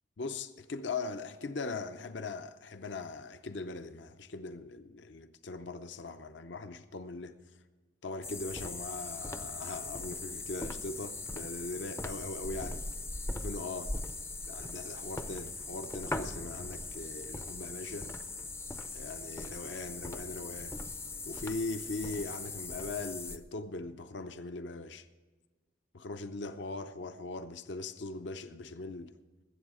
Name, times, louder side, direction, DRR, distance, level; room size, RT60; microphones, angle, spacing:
voice 1, 0.2-7.4 8.0-12.8 13.3-13.9 14.5-18.1 18.9-20.8 21.3-25.1 25.9-29.1, left 3 dB, 65° left, 0.6 m, -40 dB
sound 1, 8.2-23.4, left 2 dB, 10° left, 0.4 m, -40 dB
20.5 x 8.1 x 4.9 m
head